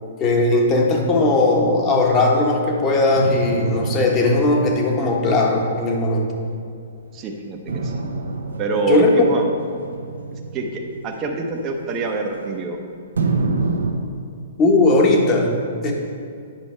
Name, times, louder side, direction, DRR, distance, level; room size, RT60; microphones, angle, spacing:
voice 1, 0.2-6.3 8.9-9.3 14.6-15.5 15.8-15.9, left 2 dB, 30° left, 1 dB, 1.3 m, -18 dB
sound 1, 3.2-6.8 7.7-12.7 13.2-13.9, right 3 dB, 85° right, 0.9 m, -28 dB
voice 2, 7.1-7.9 8.6-9.5 10.5-12.8, right 4 dB, 30° right, 1 dB, 0.8 m, -25 dB
9.0 x 5.2 x 4.4 m, 2.4 s
hypercardioid pair, 125°, 0 cm